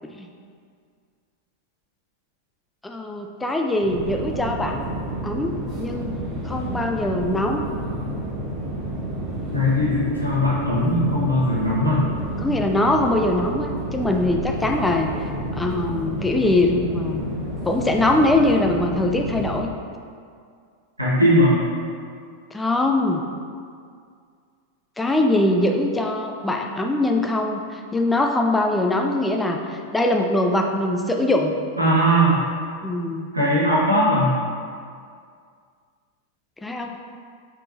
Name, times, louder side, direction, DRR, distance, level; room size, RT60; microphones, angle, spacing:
voice 1, 2.8-4.9 5.2-6.2 6.4-7.6 12.4-15.1 15.5-17.2 17.7-19.7 22.5-23.2 25.0-31.5 32.8-33.3 36.6-37.0, left 2 dB, 10° left, 3 dB, 0.3 m, -22 dB
sound 1, 3.8-19.6, right 1 dB, 25° right, 0.9 m, -30 dB
voice 2, 9.5-12.0 21.0-21.6 31.8-32.4 33.3-34.3, equal, 85° right, -7 dB, 1.2 m, -19 dB
5.6 x 3.7 x 2.6 m, 2.2 s
figure-of-eight pair, 90°, 0 cm